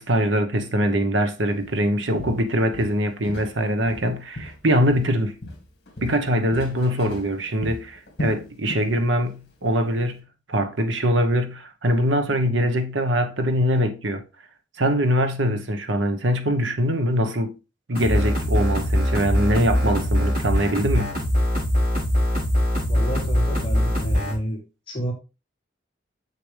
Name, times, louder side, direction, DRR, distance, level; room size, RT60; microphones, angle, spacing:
voice 1, 0.0-5.4 6.0-10.2 10.5-14.2 14.8-17.6 17.9-21.2, equal, 75° right, 1.1 m, -23 dB
Walk footsteps, 1.6-1.8 2.2-3.6 3.9-5.2 5.4-8.9 9.2-9.5 10.0-10.1, left 1 dB, 60° left, 2.2 m, -36 dB
sound 1, 17.9-24.3, equal, 50° right, 5.1 m, -22 dB
voice 2, 22.8-24.6 24.9-25.1, right 1 dB, 30° left, 2.9 m, -30 dB
6.8 x 6.7 x 3.3 m
head